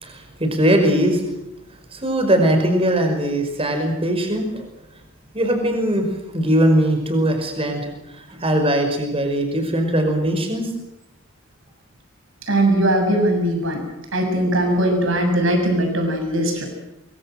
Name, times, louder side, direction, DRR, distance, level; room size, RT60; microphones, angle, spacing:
voice 1, 0.0-1.2 1.9-4.7 5.3-7.9 8.3-10.7, right 1 dB, 25° right, 5 dB, 5.3 m, -20 dB
voice 2, 12.5-13.8 14.1-16.7, right 1 dB, 65° right, 4 dB, 7.2 m, -19 dB
24.0 x 24.0 x 7.8 m, 0.88 s
head